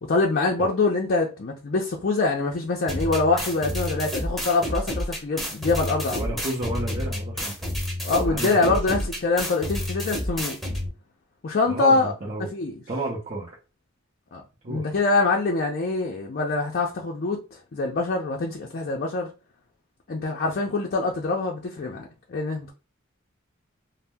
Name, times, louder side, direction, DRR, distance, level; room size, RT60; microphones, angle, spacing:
voice 1, 0.0-6.4 8.0-10.6 11.4-12.1 12.4-12.7 14.3-19.3 20.1-22.7, left 3 dB, 50° left, 0.5 m, -24 dB
sound 1, 2.9-10.9, left 1 dB, ahead, 0.8 m, -30 dB
voice 2, 6.1-7.7 8.2-9.0 11.7-12.5 12.9-13.6 14.6-15.0, right 2 dB, 35° right, 0.6 m, -32 dB
2.7 x 2.0 x 3.3 m
head